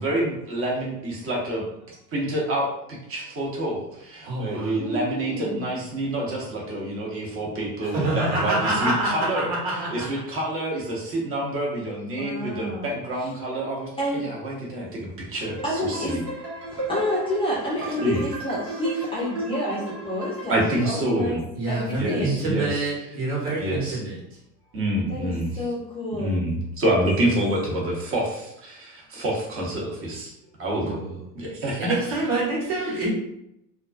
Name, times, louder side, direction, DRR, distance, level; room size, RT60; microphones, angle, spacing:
voice 1, 0.0-1.6 2.1-2.7 3.1-15.6 15.9-16.2 18.0-18.2 20.5-21.4 22.0-22.8 23.6-24.0 24.7-25.6 26.2-30.3 30.6-31.0 31.3-32.0 32.7-33.0, right 1 dB, 30° right, -3 dB, 0.8 m, -27 dB
voice 2, 4.2-4.8 7.8-10.0 21.5-24.2 30.8-31.1 31.8-33.1, right 2 dB, 65° right, -3 dB, 1.3 m, -26 dB
voice 3, 4.8-5.7 12.2-12.9 14.0-14.3 15.6-16.2 16.7-21.4 21.7-22.4 25.1-26.4, equal, 10° left, -8 dB, 0.4 m, -29 dB
sound 1, 15.4-20.9, right 1 dB, 80° right, 1.1 m, -35 dB
2.3 x 2.2 x 2.4 m, 0.81 s
hypercardioid pair, 95°, 47 cm